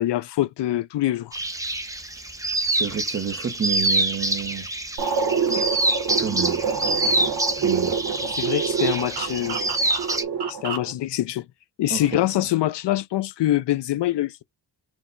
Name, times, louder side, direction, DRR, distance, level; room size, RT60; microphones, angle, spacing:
voice 1, 0.0-1.4 8.3-9.6 10.5-11.4 11.8-14.4, left 14 dB, 90° left, 0.5 m, -24 dB
sound 1, 1.3-10.2, right 2 dB, 10° right, 0.4 m, -26 dB
voice 2, 2.7-4.7 6.2-6.6 7.6-8.0 11.9-12.0, right 7 dB, 30° right, 0.8 m, -29 dB
sound 2, 5.0-10.9, right 6 dB, 75° right, 1.2 m, -26 dB
4.6 x 2.2 x 3.8 m
wide cardioid pair, 175°, 40 cm